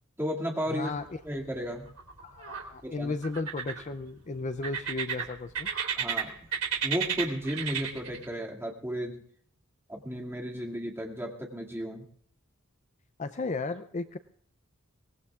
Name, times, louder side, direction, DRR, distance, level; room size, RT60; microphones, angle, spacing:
voice 1, 0.2-0.9 1.2-1.9 2.8-3.1 6.0-6.3 6.8-9.2 9.9-12.1, equal, 10° right, -2 dB, 2.3 m, -34 dB
voice 2, 0.7-1.2 2.2-5.7 13.2-14.2, left 3 dB, 35° left, 11 dB, 0.5 m, -34 dB
sound 1, 0.8-1.4 1.7-2.6 3.2-4.1 4.6-6.2 6.5-8.2, right 7 dB, 90° right, 3.4 m, -32 dB
23.5 x 20.0 x 2.4 m, 0.63 s
head